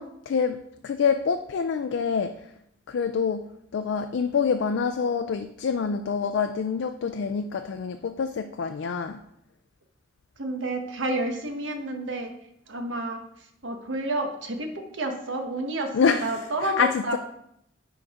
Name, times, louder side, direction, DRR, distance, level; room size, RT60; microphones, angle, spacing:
voice 1, 0.0-2.4 2.9-3.5 3.7-9.2 15.9-17.2, left 6 dB, 80° left, 8 dB, 0.4 m, -26 dB
voice 2, 10.4-12.3 12.7-13.2 13.6-17.2, right 2 dB, 85° right, 4 dB, 1.1 m, -30 dB
10.5 x 4.1 x 3.5 m, 0.75 s
head